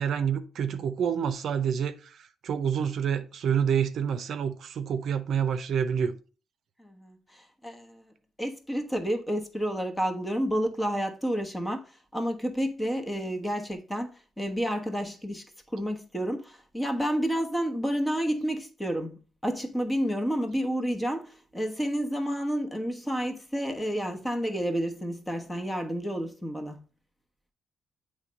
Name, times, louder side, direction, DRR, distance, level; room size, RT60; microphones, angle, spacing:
voice 1, 0.0-6.1, right 8 dB, 65° right, 0.6 m, -28 dB
voice 2, 6.8-8.0 8.4-11.8 12.1-15.5 15.7-26.8, equal, 10° left, 1.1 m, -30 dB
8.1 x 3.3 x 5.2 m
cardioid pair, 90°, 0 cm